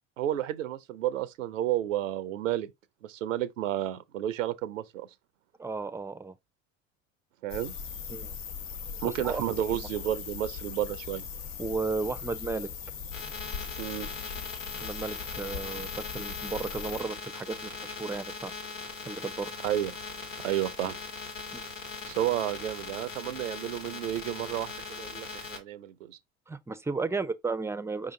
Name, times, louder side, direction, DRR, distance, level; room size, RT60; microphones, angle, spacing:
voice 1, 0.2-2.7 3.0-5.1 7.4-7.7 9.0-11.3 13.8-14.1 19.6-19.9 20.4-21.0 22.1-26.2, right 12 dB, 80° right, 0.6 m, -31 dB
voice 2, 5.6-6.3 8.1-8.3 9.0-9.4 9.7-9.9 11.6-12.7 14.8-18.5 19.1-19.5 21.5-21.7 26.5-28.1, right 4 dB, 5° right, 0.5 m, -34 dB
sound 1, 7.5-17.0, left 7 dB, 75° left, 1.1 m, -39 dB
sound 2, 13.1-25.6, left 4 dB, 90° left, 1.4 m, -40 dB
5.0 x 2.8 x 3.7 m
hypercardioid pair, 75°, 38 cm